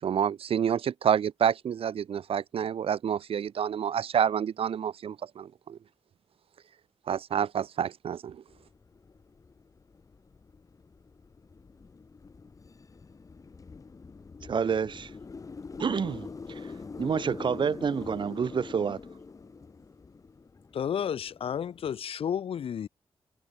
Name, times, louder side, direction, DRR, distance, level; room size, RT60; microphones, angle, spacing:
voice 1, 0.0-5.8 7.1-8.4, right 8 dB, 80° right, 2.5 m, -28 dB
sound 1, 8.5-22.0, left 4 dB, 35° left, 5.8 m, -45 dB
voice 2, 14.4-15.1 15.8-16.7 17.0-19.0, right 6 dB, 55° right, 5.9 m, -29 dB
voice 3, 20.7-22.9, left 8 dB, 80° left, 2.4 m, -31 dB
wide cardioid pair, 135°, 10 cm